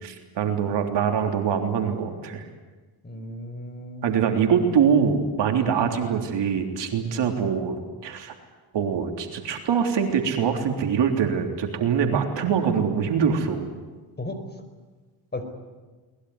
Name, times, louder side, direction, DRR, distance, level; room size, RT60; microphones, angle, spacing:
voice 1, 0.0-2.4 4.0-8.3 8.7-13.7, right 7 dB, 55° right, 4 dB, 3.5 m, -24 dB
voice 2, 3.0-4.3 5.6-5.7 14.2-14.6 15.3-15.5, left 1 dB, 20° left, 8 dB, 4.8 m, -35 dB
22.5 x 20.5 x 9.8 m, 1.3 s
supercardioid pair, 75°, 49 cm